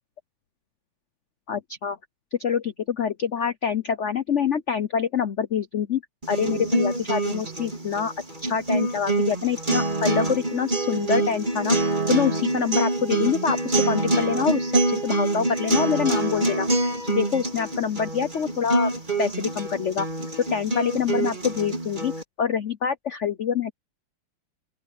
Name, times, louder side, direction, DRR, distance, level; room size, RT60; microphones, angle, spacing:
voice 1, 1.5-2.0 2.3-6.0 6.3-8.1 8.4-11.8 12.1-18.9 19.2-20.1 20.5-22.1 22.4-23.7, left 7 dB, 85° left, 0.6 m, -26 dB
sound 1, 6.2-22.2, right 2 dB, 20° right, 4.8 m, -26 dB
open air
omnidirectional pair, 2.4 m